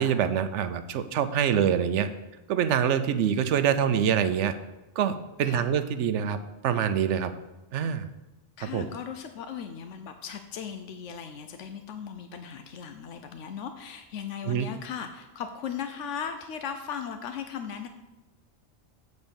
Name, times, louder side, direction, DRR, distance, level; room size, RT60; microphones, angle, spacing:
voice 1, 0.0-2.1 2.5-4.5 5.0-6.4 6.6-7.3 7.7-8.0 8.6-8.9 14.5-14.7, right 8 dB, 80° right, 11 dB, 0.9 m, -25 dB
voice 2, 8.6-17.9, left 7 dB, 85° left, 7 dB, 1.0 m, -37 dB
8.0 x 4.2 x 7.0 m, 1.0 s
omnidirectional pair, 1.2 m